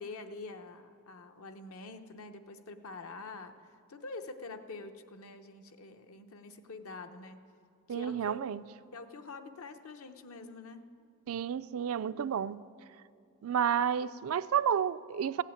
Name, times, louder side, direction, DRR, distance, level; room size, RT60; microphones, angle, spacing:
voice 1, 0.0-7.4 7.9-8.5 8.9-10.8, left 3 dB, 70° left, 0.8 m, -46 dB
voice 2, 7.9-8.6 11.3-12.6 13.4-15.4, right 8 dB, 70° right, 0.4 m, -31 dB
15.5 x 8.3 x 9.2 m
head